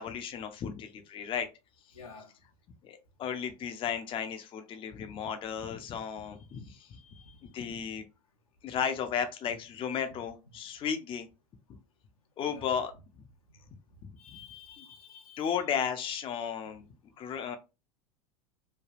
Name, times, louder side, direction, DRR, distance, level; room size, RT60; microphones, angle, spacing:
voice 1, 0.0-1.5 2.8-6.9 7.4-8.0 8.6-11.3 12.4-13.2 14.0-14.1 14.8-14.9 15.4-16.8 17.2-17.6, left 7 dB, 30° left, 0.5 m, -34 dB
voice 2, 1.9-2.3 6.9-7.4 10.1-10.2 12.4-12.7 14.2-15.6, left 5 dB, 85° left, 0.8 m, -51 dB
3.2 x 2.2 x 2.4 m
hypercardioid pair, 90°, 18 cm